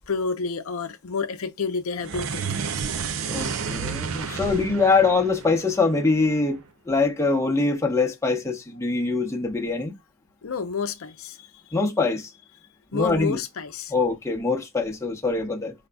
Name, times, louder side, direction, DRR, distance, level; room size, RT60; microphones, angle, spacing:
voice 1, 0.1-2.5 4.2-4.5 10.4-11.4 12.9-13.9, left 5 dB, 80° left, 0.6 m, -29 dB
sound 1, 2.0-6.4, right 6 dB, 75° right, 0.6 m, -31 dB
voice 2, 3.3-6.6 6.9-9.9 11.7-12.3 12.9-13.4 13.9-15.7, left 3 dB, 15° left, 0.9 m, -23 dB
5.0 x 4.0 x 2.2 m
head